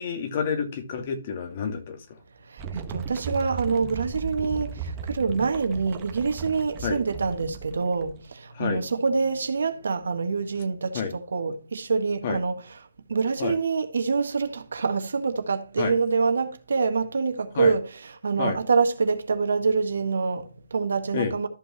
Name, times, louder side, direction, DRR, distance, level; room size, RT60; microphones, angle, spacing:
voice 1, 0.0-2.0 6.8-7.0 8.5-8.8 10.9-11.1 12.2-12.4 13.4-13.6 15.8-15.9 17.6-17.7 18.4-18.6 21.1-21.3, left 6 dB, 40° left, 2.2 m, -28 dB
voice 2, 2.5-12.8 13.1-21.5, right 4 dB, 75° right, 1.6 m, -26 dB
sound 1, 2.6-8.3, right 6 dB, 25° right, 1.3 m, -36 dB
13.5 x 5.5 x 3.0 m
hypercardioid pair, 150°, 0 cm